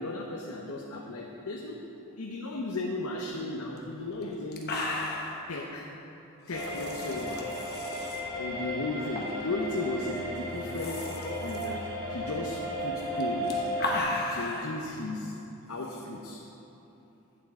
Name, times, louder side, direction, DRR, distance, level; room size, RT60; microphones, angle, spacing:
voice 1, 0.0-1.8 2.2-4.9 5.5-5.9 6.5-7.4 8.4-11.1 11.4-13.6 14.3-15.4 15.7-16.4, left 2 dB, 90° left, 0 dB, 0.8 m, -35 dB
sound 1, 3.8-3.9 4.2-4.3 4.5-5.4 6.5-8.2 9.1-9.4 9.7-9.8 10.5-11.7 13.1-14.7 15.8-16.0, left 2 dB, 50° left, 1.2 m, -35 dB
sound 2, 6.5-14.0, equal, 65° right, 2.2 m, -35 dB
12.0 x 9.0 x 3.7 m, 2.9 s
head